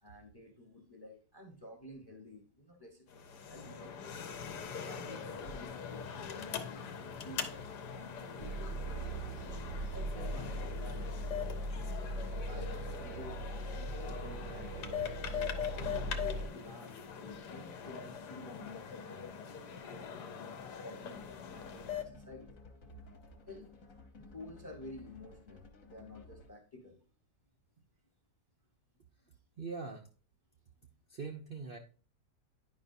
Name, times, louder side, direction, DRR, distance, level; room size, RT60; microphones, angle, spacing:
voice 1, 0.0-4.1 4.8-6.9 7.2-9.2 9.9-11.8 12.3-15.0 15.7-19.3 19.9-22.5 23.5-23.8 24.2-27.0, left 2 dB, 20° left, 4 dB, 0.7 m, -51 dB
sound 1, 3.1-22.0, left 7 dB, 75° left, 1.3 m, -42 dB
sound 2, 8.4-16.5, right 1 dB, 80° right, 1.3 m, -40 dB
sound 3, 21.1-26.7, left 2 dB, 55° left, 1.4 m, -55 dB
voice 2, 29.6-30.1 31.1-31.8, right 4 dB, 60° right, 3 dB, 0.5 m, -42 dB
9.6 x 5.5 x 2.6 m, 0.38 s
omnidirectional pair, 1.8 m